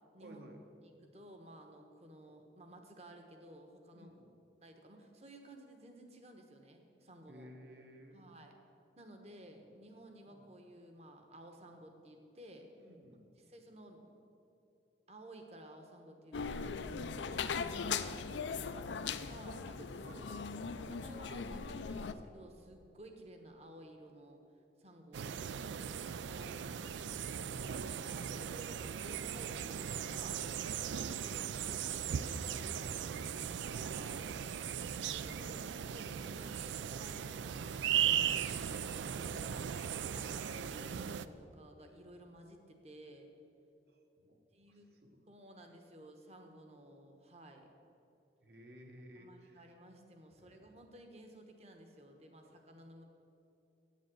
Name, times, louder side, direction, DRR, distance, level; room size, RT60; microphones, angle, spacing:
voice 1, 0.2-0.6 3.9-4.4 7.3-8.2 10.3-10.5 12.8-13.3 20.0-20.4 27.4-28.3 38.3-38.9 43.9-44.4 44.7-45.2 48.4-49.7 50.4-50.6, equal, 60° right, 3 dB, 1.3 m, -57 dB
voice 2, 0.8-4.1 4.6-7.5 8.1-8.5 9.0-12.7 13.4-14.2 15.1-17.5 18.5-20.2 20.8-24.4 24.8-25.4 26.2-30.4 31.2-34.3 35.1-43.3 44.5-45.0 45.3-47.7 49.1-53.0, right 1 dB, 35° right, 5 dB, 1.1 m, -55 dB
sound 1, 16.3-22.1, left 5 dB, 85° left, 0.5 m, -39 dB
sound 2, 25.1-41.3, right 8 dB, 85° right, 0.4 m, -38 dB
9.1 x 7.4 x 7.6 m, 2.8 s
head